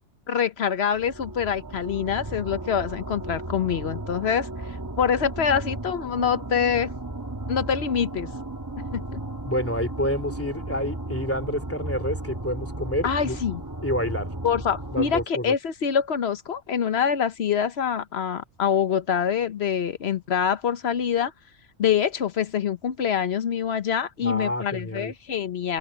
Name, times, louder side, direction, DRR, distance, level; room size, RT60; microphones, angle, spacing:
voice 1, 0.3-4.5 5.0-6.9 7.5-8.3 8.9-9.0 13.0-13.6 14.4-21.3 21.8-25.8, left 7 dB, 65° left, 1.1 m, -25 dB
sound 1, 0.9-15.2, right 2 dB, 20° right, 1.2 m, -35 dB
voice 2, 9.5-13.4 13.8-14.3 14.9-15.5 24.2-25.1, equal, 10° left, 2.7 m, -28 dB
open air
omnidirectional pair, 1.2 m